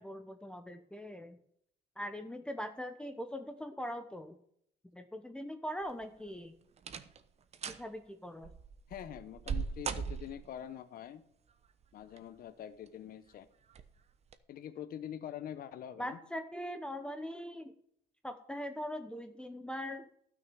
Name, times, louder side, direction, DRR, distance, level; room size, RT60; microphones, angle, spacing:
voice 1, 0.0-1.4 2.0-4.4 4.9-6.5 7.7-8.5 16.0-17.7 18.2-20.1, equal, 5° left, 7 dB, 0.9 m, -41 dB
sound 1, 5.8-6.3 6.8-7.2 7.5-7.9 8.4-10.6 11.8-12.4 12.9-13.0 13.7-13.9 14.3-14.4, right 6 dB, 40° right, 1.0 m, -39 dB
voice 2, 8.9-11.2 11.9-13.5 14.5-16.2, left 10 dB, 60° left, 12 dB, 1.0 m, -45 dB
12.5 x 6.4 x 6.9 m, 0.69 s
cardioid pair, 110°, 17 cm